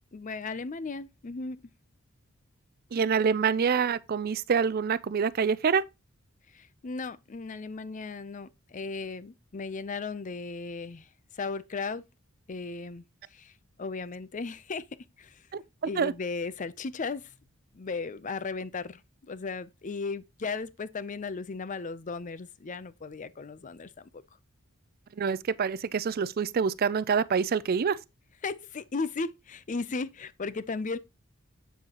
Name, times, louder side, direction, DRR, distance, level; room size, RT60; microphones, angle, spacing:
voice 1, 0.1-1.6 6.5-11.1 11.3-12.0 12.5-13.0 13.3-13.5 13.8-14.9 15.2-15.5 15.8-17.3 17.7-24.2 28.4-31.0, left 4 dB, 35° left, 0.5 m, -36 dB
voice 2, 2.9-5.8 15.5-15.6 16.0-16.1 25.2-28.0, right 6 dB, 45° right, 0.4 m, -26 dB
7.9 x 7.3 x 2.9 m
head